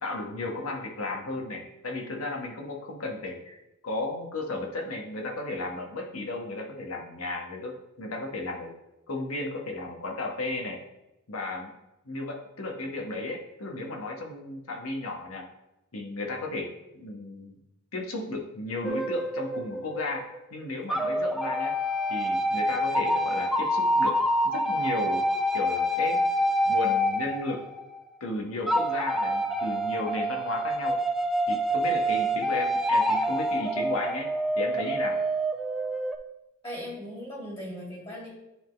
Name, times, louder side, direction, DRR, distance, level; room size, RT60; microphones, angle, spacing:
voice 1, 0.0-8.7 9.1-10.8 11.3-11.7 12.0-15.5 15.9-17.5 17.9-21.7 22.1-24.2 24.4-25.2 25.5-26.2 26.6-27.7 28.2-31.0 31.5-34.3 34.5-35.2, left 2 dB, 75° left, 2 dB, 1.1 m, -34 dB
sound 1, 18.8-20.4 20.9-28.0 28.7-36.2, equal, ahead, 0.3 m, -27 dB
voice 2, 36.6-38.3, equal, 25° left, -4 dB, 2.1 m, -38 dB
10.0 x 3.7 x 3.3 m, 0.95 s
head